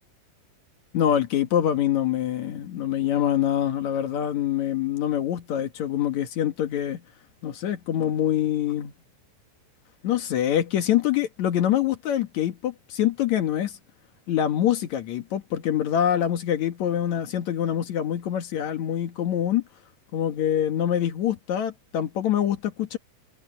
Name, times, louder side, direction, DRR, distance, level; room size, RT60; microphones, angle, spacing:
voice 1, 0.9-7.0 7.4-8.9 10.0-13.8 14.3-19.6 20.1-23.0, left 10 dB, 65° left, 1.8 m, -25 dB
omnidirectional pair, 5.4 m